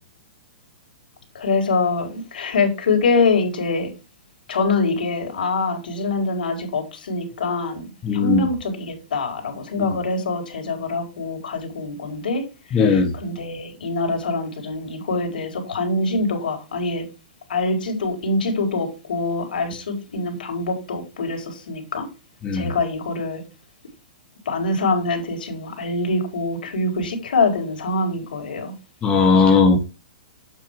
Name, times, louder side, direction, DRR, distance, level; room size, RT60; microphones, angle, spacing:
voice 1, 1.3-3.9 4.5-17.1 17.5-22.1 22.5-23.4 24.4-28.7, left 3 dB, 75° left, 4.9 m, -24 dB
voice 2, 8.0-8.5 9.8-10.0 12.7-13.1 22.4-22.7 29.0-29.8, left 4 dB, 20° left, 2.0 m, -17 dB
9.0 x 7.4 x 3.7 m
hypercardioid pair, 140°, 5 cm